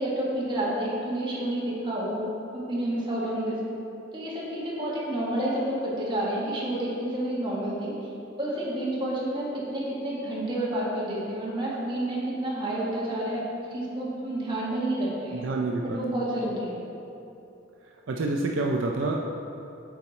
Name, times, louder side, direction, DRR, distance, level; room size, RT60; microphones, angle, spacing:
voice 1, 0.0-2.2 2.5-3.6 4.1-7.9 8.4-13.4 13.7-15.4 15.8-16.8, right 1 dB, 25° right, -7 dB, 1.6 m, -29 dB
voice 2, 15.3-16.0 18.1-19.4, right 2 dB, 70° right, 1 dB, 0.5 m, -28 dB
8.3 x 4.3 x 4.1 m, 2.8 s
head